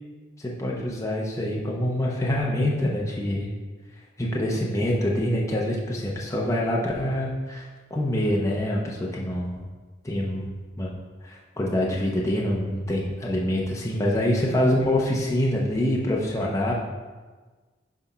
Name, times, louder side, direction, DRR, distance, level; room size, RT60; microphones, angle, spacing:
voice 1, 0.4-3.5 4.2-7.7 7.9-9.6 10.0-10.9 11.2-16.7, left 1 dB, 15° left, -3 dB, 0.7 m, -25 dB
6.0 x 4.3 x 5.5 m, 1.4 s
head